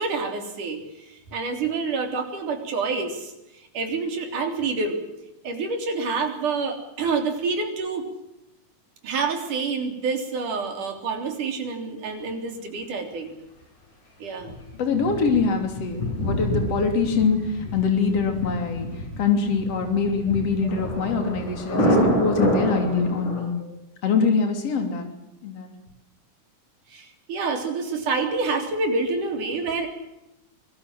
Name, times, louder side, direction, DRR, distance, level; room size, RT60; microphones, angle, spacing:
voice 1, 0.0-3.3 3.7-5.0 5.4-8.1 9.0-13.3 14.2-14.6 23.6-23.8 26.9-29.9, right 4 dB, 85° right, 4 dB, 5.0 m, -27 dB
Thunder, 14.4-23.4, equal, 90° left, 8.0 m, -27 dB
voice 2, 14.7-18.9 19.2-23.5 24.0-25.1 25.4-25.7, left 5 dB, 50° left, 5 dB, 4.1 m, -24 dB
25.0 x 19.5 x 7.6 m, 0.93 s
omnidirectional pair, 3.5 m